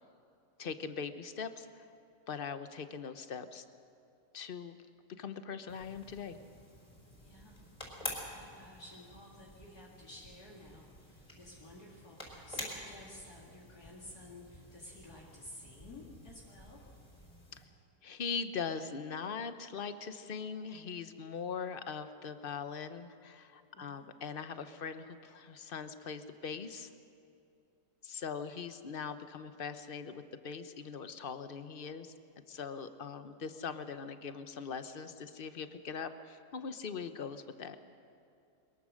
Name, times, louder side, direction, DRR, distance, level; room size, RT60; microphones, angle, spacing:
voice 1, 0.6-1.9 2.3-3.6 4.3-4.8 5.2-6.4 17.5-17.6 18.0-26.9 28.0-32.1 32.5-37.8, left 6 dB, 45° left, 10 dB, 0.8 m, -41 dB
sound 1, 5.7-17.7, left 1 dB, 25° left, 4.6 m, -49 dB
voice 2, 7.2-7.6 8.0-16.8 23.7-24.1, left 1 dB, 60° left, -4 dB, 2.9 m, -53 dB
22.5 x 21.5 x 6.4 m, 2.6 s
omnidirectional pair, 1.9 m